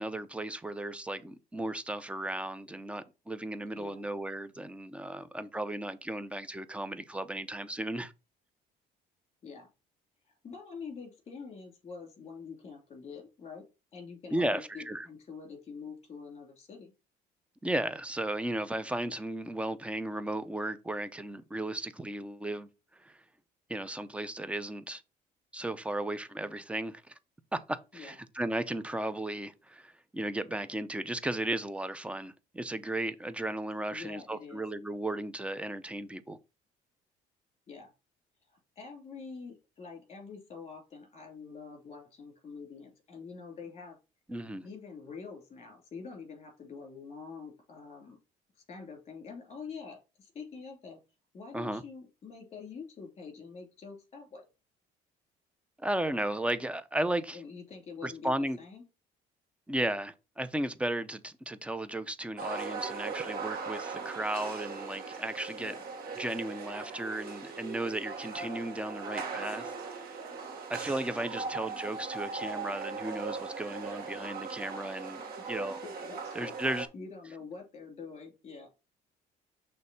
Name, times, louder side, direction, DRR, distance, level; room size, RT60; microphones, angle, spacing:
voice 1, 0.0-8.1 14.3-15.1 17.6-23.2 23.7-25.0 25.5-27.1 27.5-36.4 44.3-44.7 51.5-51.8 55.8-57.4 58.0-58.6 59.7-65.7 66.2-70.1 70.7-75.2 75.5-75.8 76.4-76.9, right 1 dB, 5° right, 0.6 m, -35 dB
voice 2, 3.7-4.1 9.4-9.7 10.3-13.6 13.9-16.9 27.9-28.1 33.9-34.6 37.7-37.9 38.5-44.0 44.6-48.2 48.5-51.0 51.3-54.4 57.3-58.8 65.6-65.9 71.3-71.5 75.4-75.5 75.8-78.7, left 5 dB, 35° left, 2.9 m, -46 dB
sound 1, 62.4-76.9, right 5 dB, 65° right, 1.8 m, -39 dB
6.2 x 3.2 x 5.4 m
cardioid pair, 110°, 17 cm